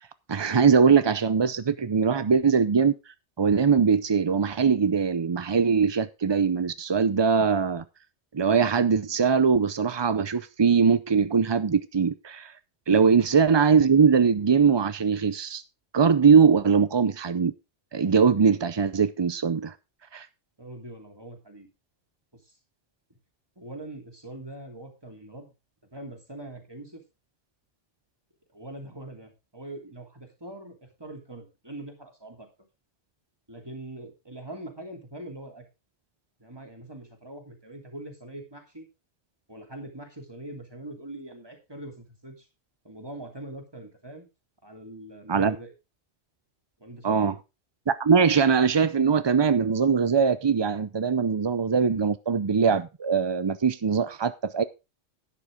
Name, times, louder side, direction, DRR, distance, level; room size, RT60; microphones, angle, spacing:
voice 1, 0.3-2.9 3.4-7.8 8.3-12.5 12.9-15.6 15.9-17.5 17.9-19.7 20.1-20.3 45.3-45.6 47.0-47.3 47.9-54.6, right 6 dB, 45° right, 0.3 m, -21 dB
voice 2, 20.6-21.7 22.4-22.5 23.6-25.5 25.9-27.0 28.5-32.5 33.5-35.6 36.4-38.9 39.5-42.5 42.8-44.3 44.6-45.7 46.8-47.3, right 1 dB, 20° right, 3.0 m, -42 dB
11.5 x 10.0 x 3.6 m
omnidirectional pair, 1.2 m